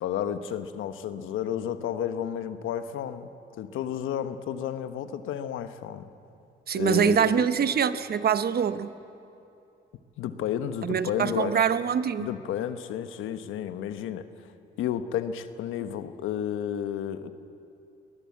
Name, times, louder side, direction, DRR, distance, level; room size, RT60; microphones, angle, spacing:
voice 1, 0.0-3.3 3.6-6.1 6.7-7.5 10.2-11.6 12.2-14.5 14.8-17.3, left 9 dB, 85° left, 1.2 m, -32 dB
voice 2, 6.7-8.9 10.8-12.3, right 8 dB, 50° right, 1.0 m, -24 dB
22.5 x 19.5 x 8.5 m
cardioid pair, 90°, 20 cm